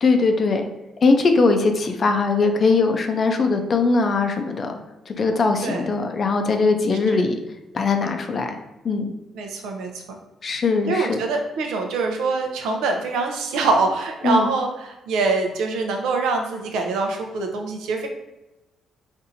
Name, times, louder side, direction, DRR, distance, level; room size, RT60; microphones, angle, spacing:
voice 1, 0.0-0.7 1.0-4.8 5.1-7.4 7.7-8.5 8.8-9.1 10.4-11.2 14.2-14.5, left 3 dB, 45° left, 5 dB, 0.5 m, -20 dB
voice 2, 9.3-10.2 10.9-18.1, right 3 dB, 90° right, 3 dB, 0.6 m, -24 dB
4.2 x 2.6 x 2.6 m, 0.98 s
cardioid pair, 90°, 0 cm